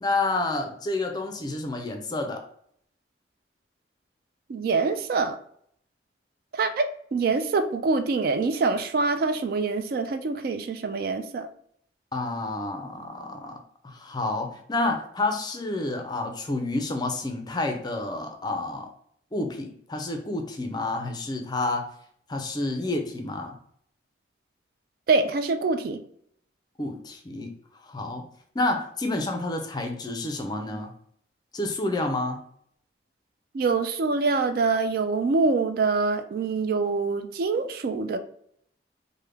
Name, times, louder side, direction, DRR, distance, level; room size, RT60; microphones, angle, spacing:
voice 1, 0.0-2.4 12.1-13.6 13.8-18.9 19.3-21.8 22.3-23.6 26.8-27.5 27.8-28.2 28.5-30.9 31.5-32.4, left 2 dB, 25° left, 4 dB, 0.4 m, -29 dB
voice 2, 4.5-5.4 6.5-11.5 25.1-26.0 33.5-38.2, right 4 dB, 55° right, 9 dB, 0.3 m, -25 dB
3.3 x 2.1 x 3.3 m, 0.66 s
head